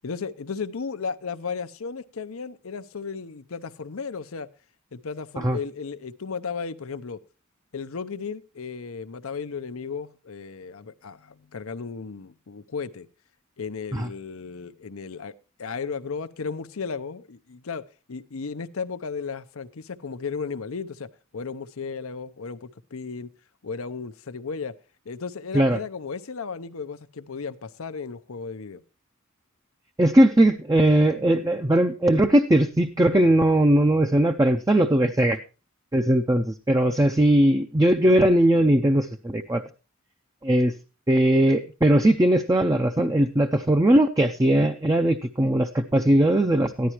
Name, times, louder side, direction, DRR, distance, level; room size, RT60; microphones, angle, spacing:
voice 1, 0.0-4.5 4.9-7.2 7.7-13.1 13.6-23.3 23.6-24.8 25.1-28.8, left 5 dB, 85° left, 0.7 m, -35 dB
voice 2, 30.0-35.4 35.9-39.6 40.4-40.7 41.1-46.9, right 1 dB, 15° right, 0.5 m, -19 dB
13.5 x 11.5 x 3.0 m
head